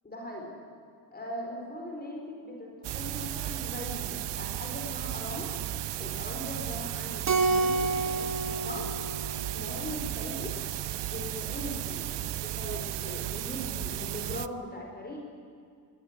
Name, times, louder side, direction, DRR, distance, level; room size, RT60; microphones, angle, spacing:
voice 1, 0.0-0.5 1.1-5.5 6.0-8.9 9.5-10.5 11.1-12.1 12.4-15.2, left 1 dB, 25° left, 0 dB, 4.4 m, -40 dB
sound 1, 2.8-14.5, right 13 dB, 80° right, 0.7 m, -35 dB
Keyboard (musical), 7.3-9.9, right 3 dB, 40° right, 1.4 m, -29 dB
25.0 x 17.5 x 9.5 m, 2.2 s
cardioid pair, 135°, 41 cm